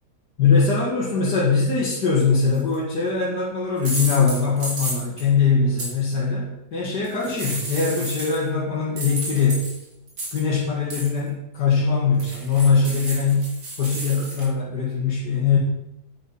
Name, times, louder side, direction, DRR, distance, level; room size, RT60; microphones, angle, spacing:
voice 1, 0.4-9.7 10.3-13.5 13.8-15.6, left 5 dB, 80° left, -6 dB, 2.3 m, -21 dB
sound 1, 2.5-2.8 3.8-5.3 5.8-5.9 7.0-8.5 9.0-10.6 10.9-11.2 12.2-14.4, right 2 dB, 80° right, 3.3 m, -32 dB
9.0 x 8.9 x 4.2 m, 0.88 s
omnidirectional pair, 1.8 m